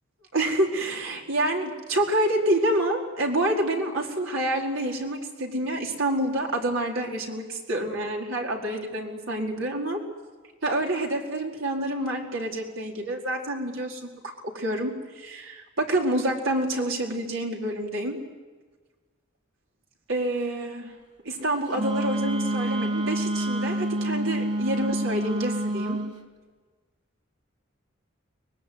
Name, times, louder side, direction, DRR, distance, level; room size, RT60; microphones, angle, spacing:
voice 1, 0.3-10.0 10.6-14.1 14.5-18.2 20.1-20.9 21.2-26.0, right 1 dB, 85° right, 0 dB, 4.7 m, -27 dB
Wind instrument woodwind instrument, 21.7-26.1, right 1 dB, 35° right, 2.8 m, -27 dB
24.0 x 20.5 x 9.7 m, 1.3 s
head